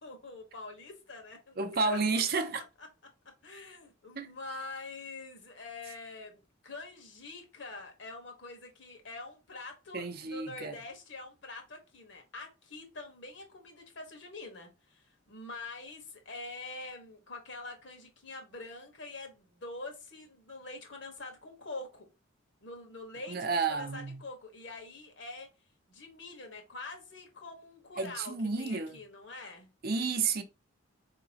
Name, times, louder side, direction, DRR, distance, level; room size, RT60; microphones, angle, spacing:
voice 1, 0.0-2.0 2.3-2.9 3.4-22.1 22.6-25.5 25.9-29.7, left 3 dB, 65° left, 1.2 m, -45 dB
voice 2, 1.6-2.6 4.2-4.3 9.9-10.8 23.3-24.2 28.0-29.0 29.8-30.4, right 4 dB, 50° right, 0.6 m, -31 dB
4.7 x 2.9 x 2.8 m
head